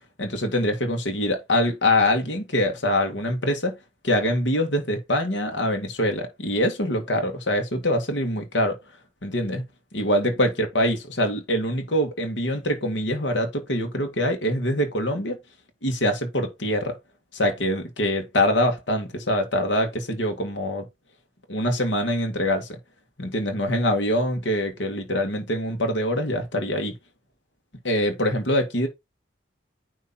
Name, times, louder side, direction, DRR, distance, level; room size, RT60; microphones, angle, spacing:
voice 1, 0.2-3.7 4.0-8.8 9.2-9.6 9.9-15.4 15.8-17.0 17.3-20.9 21.5-22.8 23.2-26.9 27.8-28.9, left 1 dB, 70° left, 1.9 m, -24 dB
9.4 x 3.3 x 4.3 m
head